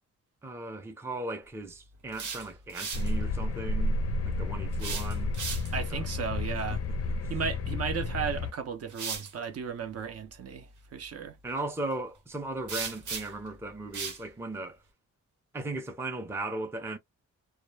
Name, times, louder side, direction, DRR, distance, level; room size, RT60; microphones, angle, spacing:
voice 1, 0.4-4.0 4.2-5.3 5.9-6.0 6.7-6.8 11.4-14.8 15.5-17.0, right 2 dB, 10° right, 0.4 m, -37 dB
sound 1, 1.9-3.1 4.7-5.9 8.0-8.1 8.9-9.3 12.7-13.5 13.9-14.2, right 5 dB, 80° right, 1.0 m, -37 dB
sound 2, 2.9-8.5, left 2 dB, 55° left, 0.4 m, -31 dB
voice 2, 5.7-6.8 7.3-11.4, right 7 dB, 55° right, 0.5 m, -35 dB
2.3 x 2.0 x 3.1 m
wide cardioid pair, 160°, 30 cm